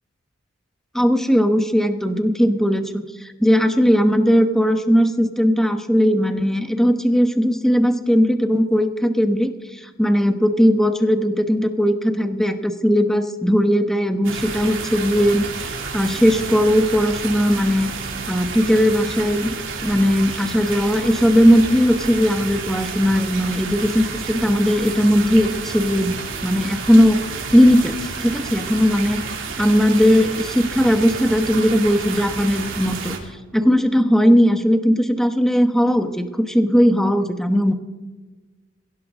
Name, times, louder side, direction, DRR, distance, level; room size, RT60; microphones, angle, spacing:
voice 1, 0.9-15.5 15.9-17.9 18.3-19.5 19.8-27.2 27.5-29.2 29.6-33.1 33.5-37.7, equal, ahead, 7 dB, 1.1 m, -18 dB
sound 1, 14.2-33.2, right 5 dB, 75° right, 3.2 m, -30 dB
22.0 x 16.5 x 3.7 m, 1.3 s
head